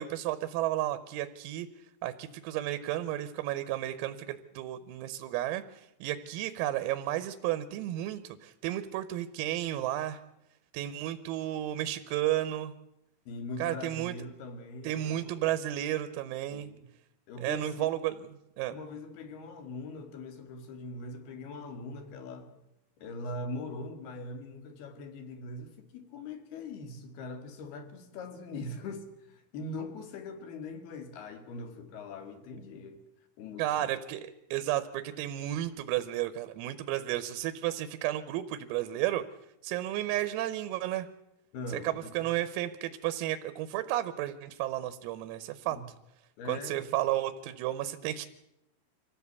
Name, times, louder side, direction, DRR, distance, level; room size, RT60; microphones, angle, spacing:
voice 1, 0.0-1.7 2.0-10.2 10.7-12.7 13.6-14.1 14.8-16.7 17.4-18.3 18.6-18.8 33.6-39.2 39.6-41.1 41.8-45.8 46.5-48.3, right 13 dB, 85° right, 3.7 m, -32 dB
voice 2, 13.3-15.3 16.5-16.9 17.3-17.9 18.7-22.5 23.0-33.0 33.4-33.9 41.5-42.2 45.8-45.9 46.4-46.8, left 2 dB, 55° left, 3.6 m, -41 dB
25.5 x 16.0 x 8.3 m
omnidirectional pair, 6.0 m